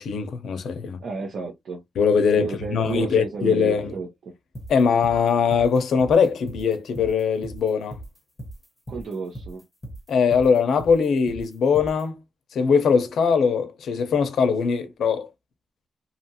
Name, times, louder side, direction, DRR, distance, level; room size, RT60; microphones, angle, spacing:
voice 1, 0.0-1.0 2.0-3.9 4.7-8.0 10.1-12.2 12.5-15.3, left 6 dB, 90° left, 0.6 m, -21 dB
voice 2, 1.0-1.8 2.3-4.1 8.9-9.6, right 4 dB, 60° right, 0.7 m, -32 dB
sound 1, 4.5-12.0, right 1 dB, 5° left, 0.8 m, -38 dB
2.8 x 2.4 x 2.6 m
wide cardioid pair, 175°, 0 cm